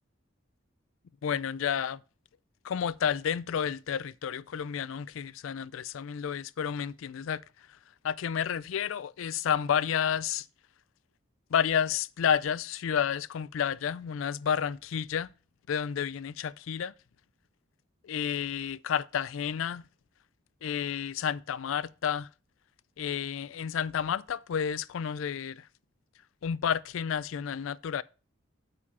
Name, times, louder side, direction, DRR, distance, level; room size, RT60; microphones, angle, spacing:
voice 1, 1.2-2.0 2.6-7.8 8.0-10.5 11.5-15.3 15.7-16.9 18.0-19.8 20.6-22.3 23.0-25.7 26.4-28.0, left 8 dB, 85° left, 0.4 m, -31 dB
8.6 x 5.0 x 5.5 m
head